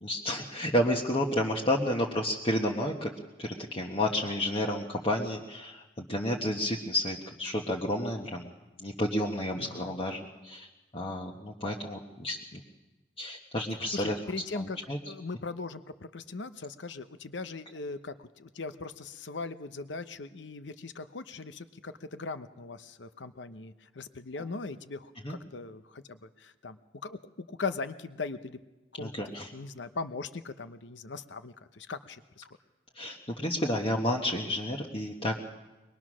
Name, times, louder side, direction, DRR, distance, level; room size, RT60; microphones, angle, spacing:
voice 1, 0.0-3.1 3.4-8.5 8.8-10.7 10.9-12.6 13.2-14.2 14.5-15.0 25.2-25.4 29.0-29.5 32.9-35.4, left 1 dB, 30° left, -2 dB, 1.3 m, -31 dB
voice 2, 9.6-10.0 13.9-14.8 15.1-28.6 28.9-32.5, left 3 dB, 80° left, 12 dB, 0.9 m, -40 dB
23.0 x 21.0 x 6.2 m, 1.1 s
head